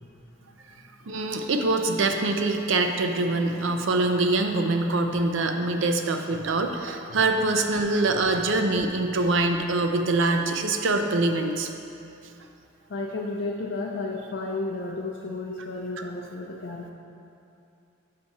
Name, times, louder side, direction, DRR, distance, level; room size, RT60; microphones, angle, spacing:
voice 1, 1.1-11.7 16.0-16.1, right 2 dB, 65° right, 5 dB, 0.5 m, -24 dB
voice 2, 12.9-16.9, left 2 dB, 55° left, -2 dB, 0.5 m, -32 dB
6.7 x 4.6 x 4.1 m, 2.7 s
head